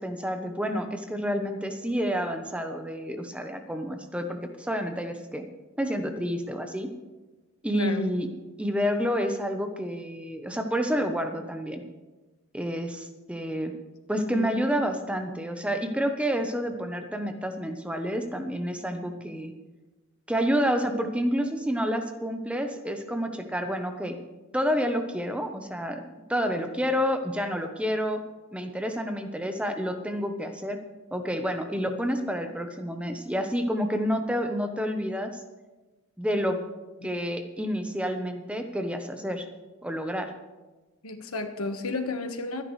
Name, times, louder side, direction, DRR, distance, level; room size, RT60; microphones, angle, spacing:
voice 1, 0.0-5.4 5.8-6.9 7.6-8.3 8.6-11.8 12.5-13.7 14.1-19.5 20.3-24.2 24.5-26.0 26.3-28.2 28.5-30.8 31.1-35.3 36.2-36.6 37.0-39.5 39.8-40.3, equal, 5° right, 6 dB, 0.8 m, -29 dB
voice 2, 7.7-8.1 14.3-14.6 37.0-37.1 41.0-42.6, left 2 dB, 80° left, 7 dB, 1.4 m, -32 dB
24.5 x 10.5 x 3.2 m, 1.2 s
head